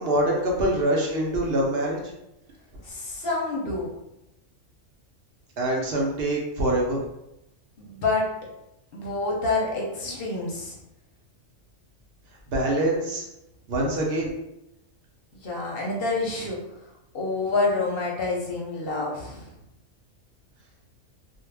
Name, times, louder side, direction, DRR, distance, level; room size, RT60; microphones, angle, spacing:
voice 1, 0.0-2.0 5.6-7.0 12.5-13.3 13.7-14.3, right 1 dB, 60° right, -2 dB, 0.8 m, -24 dB
voice 2, 2.8-3.9 7.8-8.2 8.9-10.8 15.4-16.6 17.1-19.4, left 3 dB, 55° left, -2 dB, 0.7 m, -27 dB
2.5 x 2.0 x 3.2 m, 0.87 s
omnidirectional pair, 1.3 m